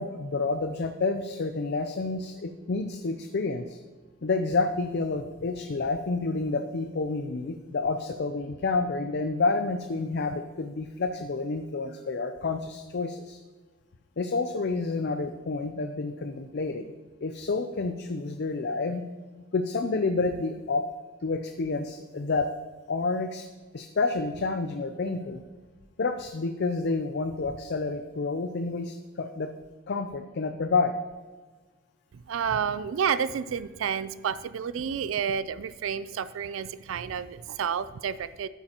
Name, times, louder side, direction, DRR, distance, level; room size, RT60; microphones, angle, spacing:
voice 1, 0.0-3.8 4.2-13.4 14.2-16.9 17.2-19.0 19.5-20.9 21.2-22.5 22.9-23.5 23.7-25.4 26.0-29.5 29.9-31.0, left 3 dB, 55° left, 8 dB, 0.5 m, -29 dB
voice 2, 32.1-38.5, right 7 dB, 75° right, 15 dB, 0.4 m, -30 dB
12.0 x 8.9 x 2.9 m, 1.4 s
head